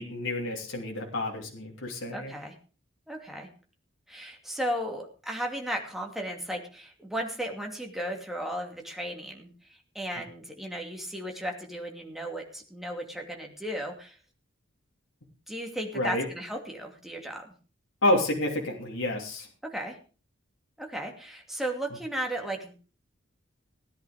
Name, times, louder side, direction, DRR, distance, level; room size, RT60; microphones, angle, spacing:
voice 1, 0.0-2.3 15.9-16.3 18.0-19.5, left 1 dB, 70° left, 0 dB, 3.0 m, -29 dB
voice 2, 2.1-2.5 3.1-3.5 4.1-14.2 15.5-17.5 19.6-20.0 20.8-22.7, right 1 dB, ahead, 1 dB, 2.5 m, -35 dB
17.0 x 10.5 x 5.0 m, 0.37 s
head